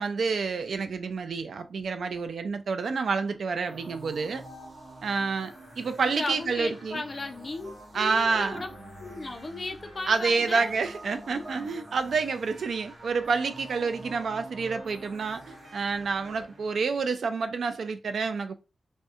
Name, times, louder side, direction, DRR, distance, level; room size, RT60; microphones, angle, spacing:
voice 1, 0.0-4.4 5.0-7.0 7.9-8.7 10.1-15.4 15.7-18.5, right 4 dB, 85° right, 0.3 m, -28 dB
sound 1, 3.6-17.2, right 1 dB, 70° right, 1.0 m, -46 dB
voice 2, 6.0-8.7 9.0-10.7, left 2 dB, 40° left, 0.4 m, -36 dB
2.7 x 2.1 x 2.4 m
wide cardioid pair, 145°, 0 cm